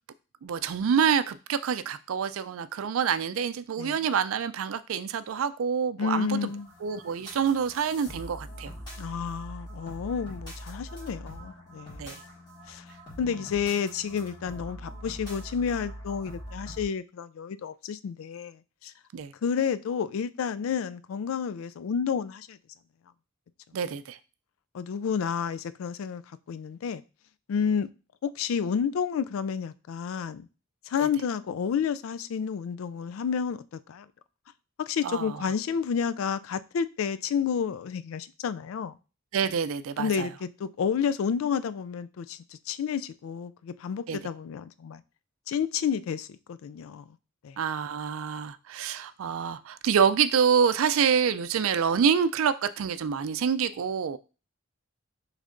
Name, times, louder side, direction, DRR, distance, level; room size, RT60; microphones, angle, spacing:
voice 1, 0.4-6.5 6.8-8.7 12.0-12.1 19.1-19.3 23.7-24.2 35.0-35.4 39.3-40.3 44.1-44.2 47.6-54.2, right 7 dB, 80° right, 0.4 m, -27 dB
voice 2, 6.0-6.7 9.0-12.1 12.7-12.9 13.2-18.9 19.4-22.6 24.7-26.2 26.5-27.0 27.5-27.9 28.2-30.5 30.9-34.1 34.8-38.9 40.0-45.0 45.5-47.0 47.4-47.6, left 7 dB, 80° left, 0.3 m, -30 dB
Rhythmic Game Menu Ambience, 6.2-16.9, equal, 20° left, 1.9 m, -43 dB
6.3 x 3.3 x 2.5 m
head